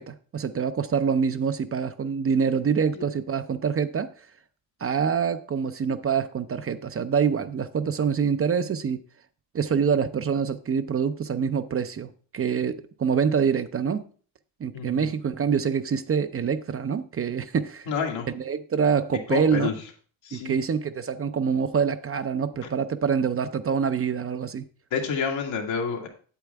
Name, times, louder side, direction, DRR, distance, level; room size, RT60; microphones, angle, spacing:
voice 1, 0.0-4.1 4.8-9.0 9.5-14.1 14.6-17.9 18.3-19.7 20.3-24.7, right 6 dB, 30° right, 0.5 m, -25 dB
voice 2, 14.7-15.1 17.9-18.3 19.3-19.8 20.2-20.6 24.9-26.1, left 6 dB, 85° left, 2.1 m, -28 dB
8.3 x 8.1 x 3.4 m
cardioid pair, 95°, 44 cm